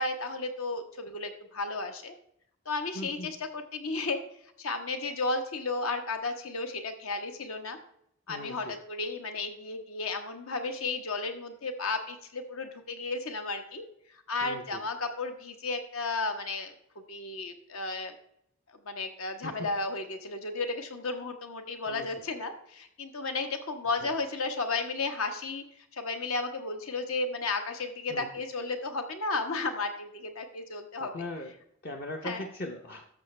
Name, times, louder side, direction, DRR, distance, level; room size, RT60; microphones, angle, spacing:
voice 1, 0.0-2.1 2.6-7.8 8.3-16.7 17.1-18.1 18.7-31.3 32.2-32.5, left 3 dB, 75° left, 6 dB, 1.2 m, -34 dB
voice 2, 2.9-3.3 8.3-8.8 14.4-14.8 19.4-19.7 21.9-22.1 24.0-24.1 28.1-28.3 31.0-31.5 31.8-33.1, left 1 dB, 45° left, 2 dB, 0.7 m, -40 dB
12.5 x 6.4 x 3.2 m, 0.72 s
head